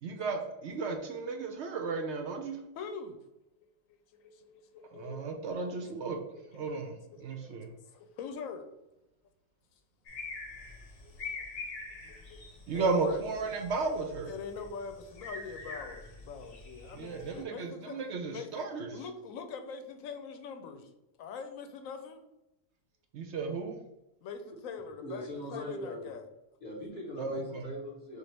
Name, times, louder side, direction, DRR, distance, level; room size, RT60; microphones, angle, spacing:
voice 1, 0.0-2.6 4.9-6.2 6.5-7.7 12.7-14.3 16.9-18.9 23.1-23.8 27.2-27.7, right 4 dB, 65° right, 4 dB, 0.8 m, -34 dB
voice 2, 2.8-3.2 4.1-5.2 6.5-6.8 7.1-8.7 11.0-11.4 12.3-12.4 12.7-13.2 14.3-18.7 18.9-20.9 21.2-22.2 24.2-26.3, left 5 dB, 85° left, 7 dB, 1.0 m, -43 dB
sound 1, 10.1-17.4, left 3 dB, 60° left, 1.3 m, -45 dB
voice 3, 25.0-26.1 26.6-28.2, equal, 35° left, -4 dB, 1.4 m, -40 dB
6.4 x 2.4 x 3.3 m, 0.94 s
omnidirectional pair, 1.4 m